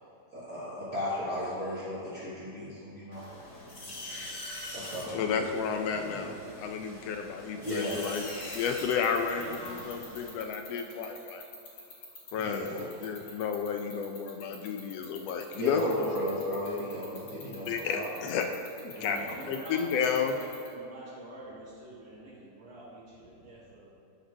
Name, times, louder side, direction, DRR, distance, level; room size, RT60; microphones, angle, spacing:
voice 1, 0.3-3.2 4.7-5.5 5.9-6.3 7.6-8.3 12.3-13.3 15.6-18.1 19.0-19.5, left 1 dB, 35° right, -10 dB, 1.9 m, -35 dB
sound 1, 3.1-10.3, left 1 dB, 35° left, 2.2 m, -43 dB
voice 2, 5.1-8.2 8.5-11.4 12.3-15.8 17.7-18.5 18.8-20.4, left 6 dB, 75° left, 5 dB, 1.5 m, -32 dB
sound 2, 7.8-20.7, left 6 dB, 60° left, 2.8 m, -45 dB
voice 3, 18.9-23.9, right 1 dB, 65° right, -10 dB, 2.9 m, -46 dB
11.5 x 5.3 x 6.2 m, 2.7 s
omnidirectional pair, 3.3 m